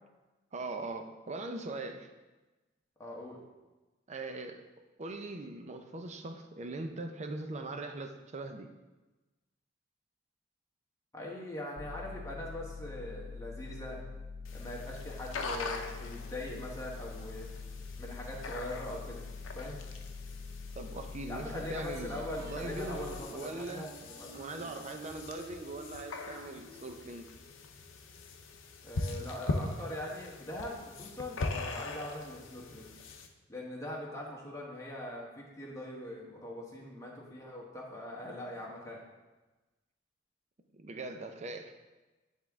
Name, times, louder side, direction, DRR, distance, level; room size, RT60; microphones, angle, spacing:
voice 1, 0.5-2.1 4.1-4.6 5.0-8.7 20.8-23.0 23.3-23.9 24.3-27.3 40.7-41.7, right 2 dB, 35° right, 6 dB, 0.5 m, -41 dB
voice 2, 3.0-3.4 11.1-14.0 14.5-17.5 18.0-19.8 21.3-24.8 28.8-32.9 33.5-39.0, left 1 dB, 15° left, -3 dB, 1.2 m, -42 dB
sound 1, 11.8-23.2, left 4 dB, 30° left, 0.3 m, -44 dB
sound 2, 14.4-33.3, left 3 dB, 90° left, 0.6 m, -42 dB
Singing, 21.9-27.2, right 2 dB, 65° right, 2.0 m, -49 dB
9.7 x 3.6 x 3.5 m, 1.2 s
head